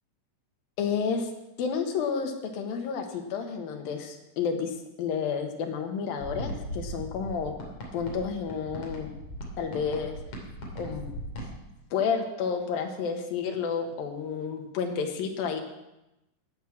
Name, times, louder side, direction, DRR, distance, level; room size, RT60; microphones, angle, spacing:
voice 1, 0.8-1.3 1.6-7.5 7.9-9.1 9.6-10.2 10.8-11.0 11.9-15.6, left 6 dB, 85° left, 3 dB, 3.2 m, -30 dB
sound 1, 6.2-11.5, equal, 60° left, 4.1 m, -39 dB
17.0 x 6.6 x 7.2 m, 0.94 s
omnidirectional pair, 4.0 m